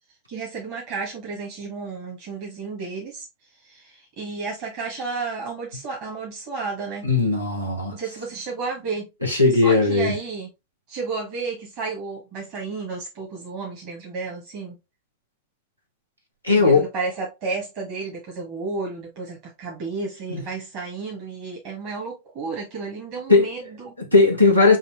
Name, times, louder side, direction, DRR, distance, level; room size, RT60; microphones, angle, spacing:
voice 1, 0.3-3.2 3.6-7.1 7.9-10.5 10.9-14.8 16.5-24.0, right 4 dB, 45° right, 1.5 m, -32 dB
voice 2, 7.0-8.0 9.2-10.1 16.4-16.8 20.3-20.4 23.3-23.5 24.0-24.8, left 3 dB, 90° right, 1.3 m, -17 dB
5.7 x 2.8 x 3.1 m
figure-of-eight pair, 90°, 0 cm